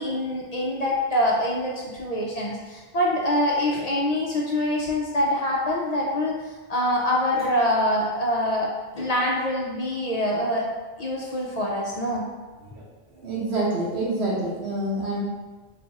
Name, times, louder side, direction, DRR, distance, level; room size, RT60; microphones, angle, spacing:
voice 1, 0.0-10.6 11.0-12.3, left 1 dB, 55° left, -3 dB, 0.5 m, -25 dB
voice 2, 13.1-15.2, right 2 dB, 90° right, -5 dB, 1.2 m, -27 dB
3.3 x 2.4 x 3.9 m, 1.3 s
omnidirectional pair, 1.1 m